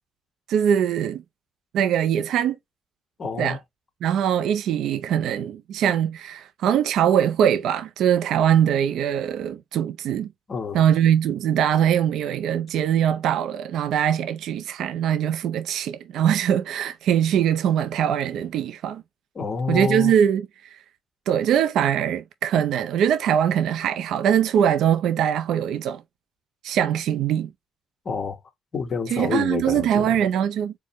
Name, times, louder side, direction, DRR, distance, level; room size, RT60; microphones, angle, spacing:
voice 1, 0.5-1.2 1.7-2.6 3.4-3.6 4.0-10.3 10.7-19.0 19.7-20.8 21.3-26.0 26.6-27.5 29.1-30.7, right 9 dB, 80° right, 0.5 m, -22 dB
voice 2, 3.2-3.6 10.5-10.8 19.3-20.1 28.0-28.4 28.7-30.3, left 5 dB, 45° left, 1.4 m, -28 dB
4.5 x 2.1 x 4.4 m
cardioid pair, 90°, 0 cm